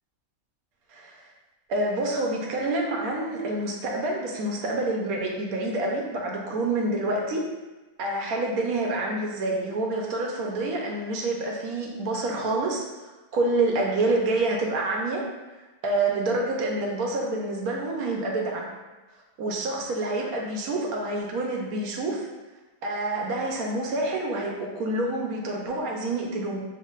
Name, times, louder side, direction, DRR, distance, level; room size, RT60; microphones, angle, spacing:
voice 1, 1.7-7.4 8.0-12.8 13.3-15.2 15.8-18.7 19.4-22.3 22.8-26.6, right 2 dB, 80° right, -1 dB, 1.2 m, -27 dB
4.7 x 3.1 x 2.4 m, 1.2 s
omnidirectional pair, 1.5 m